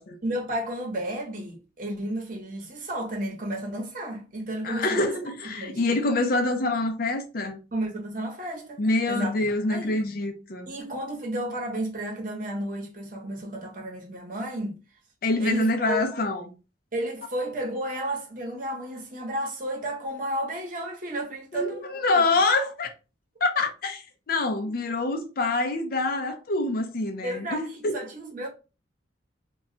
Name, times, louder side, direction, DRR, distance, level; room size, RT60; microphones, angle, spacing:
voice 1, 0.2-5.1 5.6-5.8 7.7-10.0 10.7-14.8 15.4-16.0 16.9-22.2 27.2-28.5, right 1 dB, 45° right, 0.9 m, -32 dB
voice 2, 4.6-7.6 8.8-10.7 15.2-16.5 21.5-22.9 23.4-28.0, left 2 dB, 50° left, 0.5 m, -26 dB
2.3 x 2.2 x 3.7 m
head